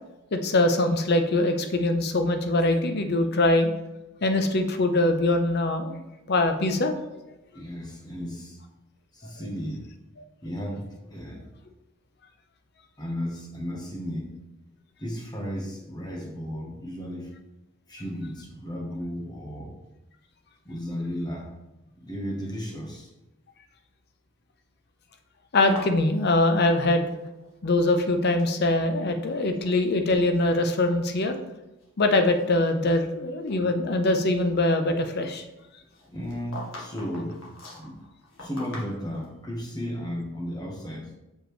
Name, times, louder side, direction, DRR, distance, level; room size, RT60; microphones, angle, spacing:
voice 1, 0.3-3.7 4.2-6.0 6.3-6.9 25.5-27.1 27.6-31.3 32.0-35.4, left 2 dB, 50° left, 7 dB, 0.6 m, -23 dB
voice 2, 7.5-8.6 9.1-9.9 10.4-11.5 13.0-14.4 15.0-17.3 17.9-19.8 20.6-21.5 22.0-23.1 36.1-38.0 38.4-41.1, equal, 20° left, 0 dB, 1.1 m, -34 dB
sound 1, 25.5-27.5 27.8-28.6 29.2-29.8 30.1-30.3 31.0-31.1 31.6-33.1 33.5-33.6 35.9-39.3, left 2 dB, 75° left, 1.6 m, -43 dB
6.5 x 5.0 x 3.1 m, 0.98 s
head